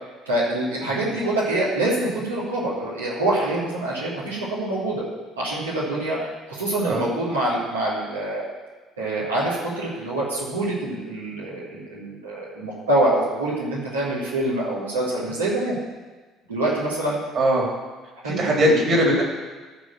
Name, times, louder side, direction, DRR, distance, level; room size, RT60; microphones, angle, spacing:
voice 1, 0.3-5.0 5.4-6.2 6.5-8.4 9.0-15.8 16.5-17.2 18.2-18.8, right 1 dB, 80° right, -7 dB, 2.9 m, -25 dB
voice 2, 17.3-17.7 18.2-19.2, equal, 40° right, -1 dB, 3.2 m, -20 dB
14.5 x 5.2 x 6.3 m, 1.3 s
figure-of-eight pair, 55°, 0 cm